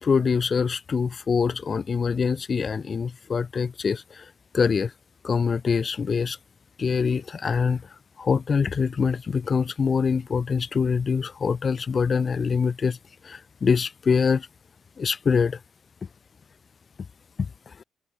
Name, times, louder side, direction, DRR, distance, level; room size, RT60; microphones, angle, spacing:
voice 1, 0.0-4.3 4.5-4.9 5.2-6.4 6.8-7.8 8.2-13.0 13.2-14.5 15.0-15.6, left 5 dB, 40° left, 1.9 m, -24 dB
open air
cardioid pair, 90°, 0 cm